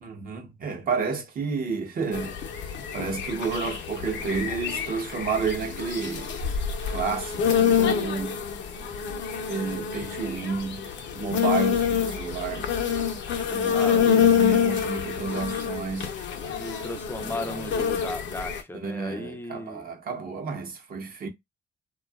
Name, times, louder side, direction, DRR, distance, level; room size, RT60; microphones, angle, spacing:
voice 1, 0.0-2.4 2.9-6.3 6.9-8.4 9.5-10.9 11.1-12.7 13.5-16.1 17.2-17.8 18.7-21.3, right 5 dB, 45° right, 0.8 m, -31 dB
sound 1, 2.1-18.6, left 7 dB, 65° left, 0.6 m, -27 dB
voice 2, 13.7-14.3 16.5-19.8, left 2 dB, 10° left, 0.5 m, -35 dB
2.6 x 2.3 x 2.3 m
cardioid pair, 90°, 20 cm